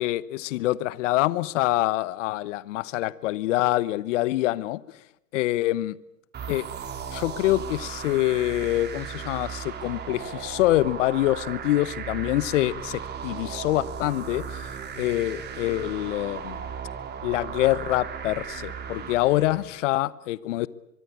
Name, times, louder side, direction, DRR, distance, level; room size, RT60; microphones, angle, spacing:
voice 1, 0.0-4.8 5.3-6.0 6.5-6.6 7.1-14.7 15.0-16.6 17.2-20.7, left 16 dB, 50° left, 1.1 m, -25 dB
sound 1, 6.3-19.8, right 7 dB, 20° right, 4.0 m, -36 dB
24.0 x 23.5 x 8.5 m
hypercardioid pair, 130°, 48 cm